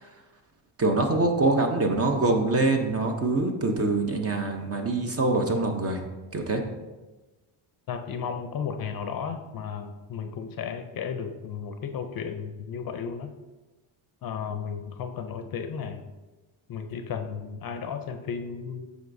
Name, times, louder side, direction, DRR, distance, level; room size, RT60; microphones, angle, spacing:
voice 1, 0.8-6.0 6.3-6.6, right 2 dB, 30° right, 4 dB, 0.8 m, -24 dB
voice 2, 7.9-13.3 14.2-16.0 16.7-18.9, left 6 dB, 45° left, 7 dB, 0.6 m, -34 dB
8.0 x 5.0 x 2.6 m, 1.1 s
cardioid pair, 115°, 49 cm